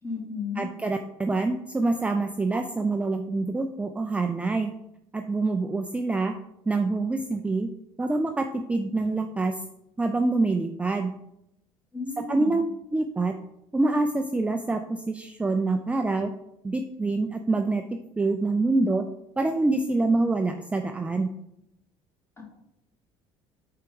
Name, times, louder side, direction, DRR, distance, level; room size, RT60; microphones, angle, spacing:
voice 1, 0.0-0.7 11.9-12.6 22.4-22.5, left 4 dB, 20° left, -2 dB, 2.5 m, -33 dB
voice 2, 0.6-4.7 5.1-6.3 6.7-7.7 8.0-9.6 10.0-11.1 12.2-12.6 12.9-13.3 13.7-16.3 16.6-17.8 18.2-19.0 19.4-21.3, right 3 dB, 10° right, 5 dB, 0.4 m, -26 dB
4.6 x 4.3 x 5.3 m, 0.83 s
supercardioid pair, 95°, 12 cm